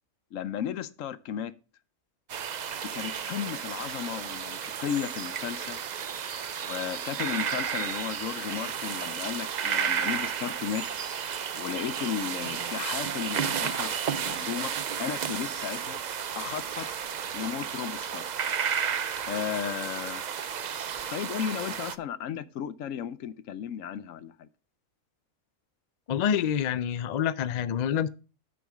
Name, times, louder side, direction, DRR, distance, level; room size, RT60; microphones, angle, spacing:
voice 1, 0.3-1.5 2.9-5.8 6.6-10.8 11.5-14.7 15.0-16.0 16.3-16.9 17.3-18.3 19.3-20.2 21.1-24.5, left 9 dB, 70° left, 1.1 m, -34 dB
sound 1, 2.3-22.0, right 7 dB, 60° right, 0.4 m, -32 dB
voice 2, 26.1-28.1, left 9 dB, 85° left, 0.3 m, -27 dB
10.0 x 6.3 x 5.1 m
omnidirectional pair, 1.5 m